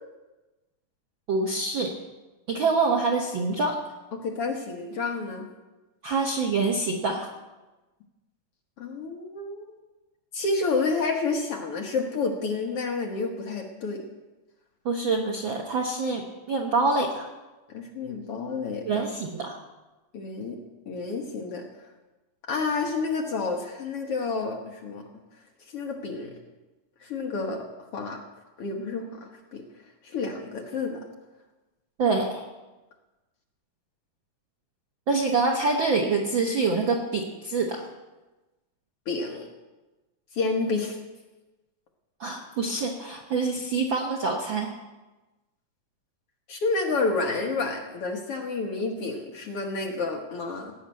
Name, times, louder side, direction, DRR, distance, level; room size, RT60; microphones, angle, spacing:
voice 1, 1.3-1.9 2.5-3.8 6.0-7.3 14.8-16.2 16.5-17.3 18.9-19.6 32.0-32.5 35.1-37.9 42.2-44.7, right 3 dB, 75° right, 1 dB, 1.1 m, -26 dB
voice 2, 4.1-5.5 8.8-9.8 10.3-14.0 17.7-19.1 20.1-20.6 20.9-21.6 22.5-25.1 25.7-26.3 27.0-28.2 28.6-29.6 30.0-31.0 39.1-39.5 40.3-41.0 46.5-50.7, left 3 dB, 55° left, 2 dB, 1.7 m, -29 dB
17.5 x 6.6 x 8.6 m, 1.1 s
omnidirectional pair, 3.9 m